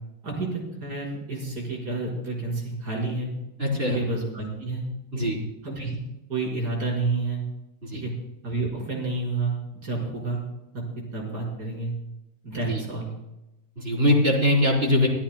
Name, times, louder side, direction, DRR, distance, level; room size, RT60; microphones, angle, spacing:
voice 1, 0.2-3.3 3.9-4.8 5.1-5.3 5.6-6.0 6.3-7.4 7.9-8.1 8.4-10.4 10.7-10.8 11.1-11.9 12.4-13.1, right 3 dB, 50° right, -3 dB, 5.3 m, -29 dB
voice 2, 3.6-4.0 5.1-5.4 7.8-8.0 12.7-12.8 13.8-15.1, left 1 dB, 30° right, -1 dB, 3.8 m, -22 dB
25.0 x 15.0 x 2.2 m, 0.92 s
omnidirectional pair, 2.2 m